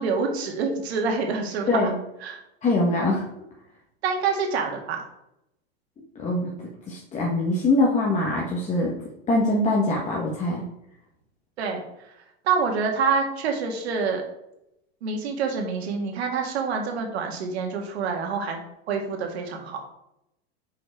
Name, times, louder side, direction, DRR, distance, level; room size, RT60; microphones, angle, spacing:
voice 1, 0.0-1.9 2.2-2.4 4.0-5.0 11.6-11.8 12.5-14.2 15.0-18.6 18.9-19.8, right 5 dB, 80° right, 2 dB, 1.8 m, -26 dB
voice 2, 2.6-3.2 6.1-6.5 6.9-8.9 9.3-10.6, left 2 dB, 20° left, -3 dB, 1.2 m, -23 dB
5.4 x 4.4 x 4.5 m, 0.83 s
supercardioid pair, 125°, 31 cm